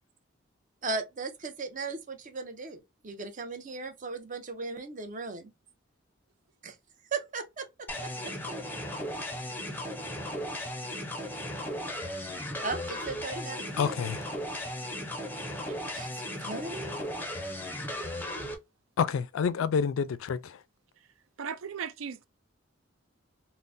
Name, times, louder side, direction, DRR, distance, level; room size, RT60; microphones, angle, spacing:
voice 1, 0.8-5.5 7.1-7.7 8.0-8.3 12.6-14.0 15.9-16.1 16.4-17.1, right 3 dB, 40° right, 0.6 m, -37 dB
sound 1, 7.9-18.5, left 1 dB, 10° left, 0.5 m, -36 dB
voice 2, 13.8-14.2 19.0-20.6, left 6 dB, 85° left, 0.3 m, -28 dB
voice 3, 21.4-22.2, right 7 dB, 85° right, 0.4 m, -37 dB
3.7 x 2.1 x 2.5 m
head